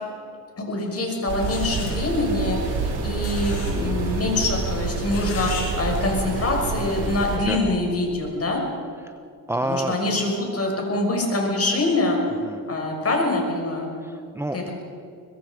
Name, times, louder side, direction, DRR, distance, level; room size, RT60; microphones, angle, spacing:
voice 1, 0.7-8.6 9.6-12.2 12.7-13.9 14.5-14.6, left 2 dB, 35° left, 0 dB, 6.2 m, -24 dB
sound 1, 0.8-0.9 1.4-1.9 3.2-3.7 4.0-4.1 5.0-5.7 5.9-6.0, left 5 dB, 85° left, 6.4 m, -36 dB
sound 2, 1.3-7.4, right 3 dB, 80° right, 6.4 m, -27 dB
voice 2, 9.5-10.0 12.4-12.6 14.0-14.7, right 1 dB, 5° right, 6 dB, 1.0 m, -28 dB
24.0 x 21.0 x 5.2 m, 2.4 s
cardioid pair, 95°, 39 cm